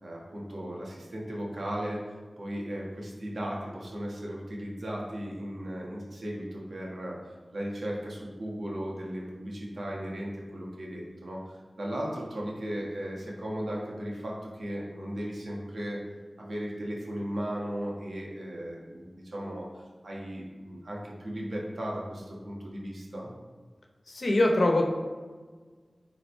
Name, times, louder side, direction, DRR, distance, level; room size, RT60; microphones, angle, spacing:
voice 1, 0.0-2.0 2.4-7.2 7.5-16.0 16.4-19.7 20.0-23.3, equal, 80° right, -3 dB, 1.6 m, -36 dB
voice 2, 24.1-24.9, left 1 dB, 75° left, 1 dB, 1.1 m, -23 dB
9.8 x 4.0 x 3.3 m, 1.5 s
cardioid pair, 40°, 0 cm